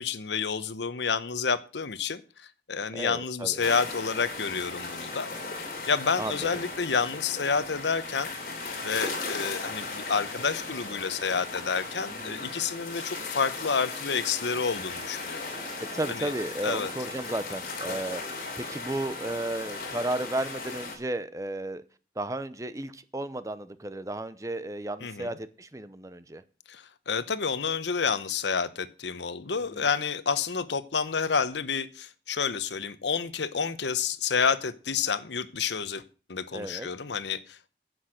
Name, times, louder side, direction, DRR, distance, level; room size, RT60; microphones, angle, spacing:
voice 1, 0.0-5.3 5.9-8.3 8.8-15.4 16.1-16.3 16.6-16.9 25.0-25.3 26.7-36.0 36.3-37.7, left 5 dB, 85° left, 0.9 m, -29 dB
voice 2, 2.9-3.6 6.2-6.3 12.2-12.5 15.9-18.2 18.6-21.8 22.2-26.4 29.7-29.9 36.5-36.9, right 1 dB, 20° right, 0.6 m, -33 dB
sound 1, 3.6-21.0, left 3 dB, 55° left, 3.2 m, -37 dB
10.5 x 7.9 x 6.4 m
head